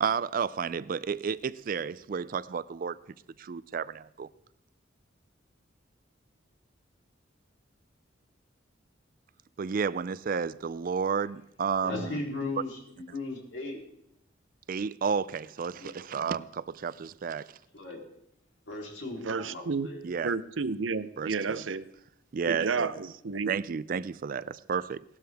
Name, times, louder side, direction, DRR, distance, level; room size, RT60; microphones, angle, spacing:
voice 1, 0.0-3.0 3.4-4.3 9.6-12.2 14.7-17.5 20.0-20.3 21.2-21.6 22.3-22.9 23.5-25.0, right 6 dB, 45° right, 0.4 m, -31 dB
voice 2, 11.8-13.8 15.7-16.1 17.7-18.0 18.7-20.0, left 2 dB, 80° left, 3.5 m, -37 dB
voice 3, 19.2-19.9 20.2-21.9 22.5-23.5, right 4 dB, 85° right, 0.7 m, -31 dB
18.0 x 12.5 x 3.5 m
head